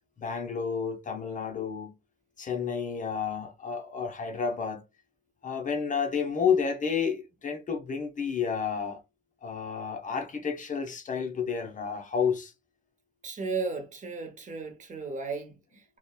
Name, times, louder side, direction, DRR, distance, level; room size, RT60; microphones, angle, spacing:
voice 1, 0.2-1.9 2.4-4.8 5.4-9.0 9.4-12.5, left 6 dB, 40° left, 0.6 m, -30 dB
voice 2, 13.2-16.0, right 4 dB, 40° right, 0.7 m, -35 dB
2.8 x 2.1 x 2.2 m
cardioid pair, 90°, 20 cm